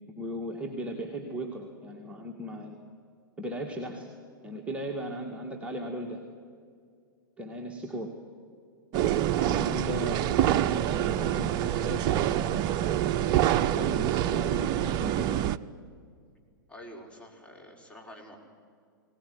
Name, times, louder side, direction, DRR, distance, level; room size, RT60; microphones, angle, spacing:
voice 1, 0.1-2.8 3.4-4.1 4.4-6.2 7.4-8.1 9.4-12.6 13.7-15.4, equal, 10° right, 0 dB, 2.2 m, -37 dB
sound 1, 8.9-15.6, right 12 dB, 40° right, 0.6 m, -26 dB
voice 2, 16.7-18.4, equal, 10° left, 0 dB, 4.7 m, -47 dB
21.0 x 18.5 x 9.7 m, 2.2 s
figure-of-eight pair, 100°, 11 cm